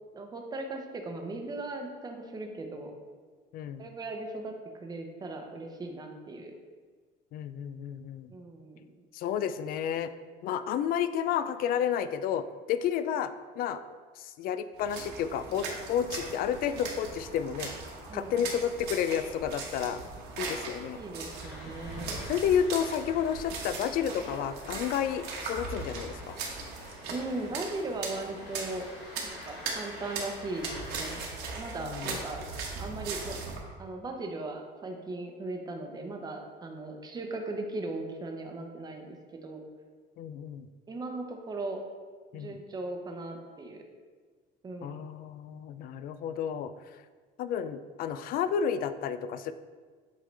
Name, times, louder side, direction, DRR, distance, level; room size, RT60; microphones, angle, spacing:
voice 1, 0.1-2.9 3.8-4.5 4.8-6.5 8.3-8.8 18.1-18.3 20.9-22.1 27.1-28.9 29.2-31.2 31.6-32.4 32.8-33.4 33.8-39.2 39.4-39.6 40.9-41.8 42.3-43.8 44.6-45.0, right 2 dB, 20° right, 3 dB, 0.8 m, -38 dB
voice 2, 3.5-3.9 7.3-8.3 9.1-10.1 10.4-13.8 14.2-17.7 18.1-20.0 20.4-21.0 22.2-26.4 31.8-32.2 40.2-40.7 42.3-42.6 44.8-46.7 47.4-49.5, left 8 dB, 55° left, 12 dB, 0.4 m, -31 dB
sound 1, 14.8-33.6, right 4 dB, 60° right, 1.3 m, -39 dB
sound 2, 21.3-31.2, left 2 dB, 75° left, 1.7 m, -49 dB
8.1 x 3.7 x 3.3 m, 1.5 s
cardioid pair, 135°, 18 cm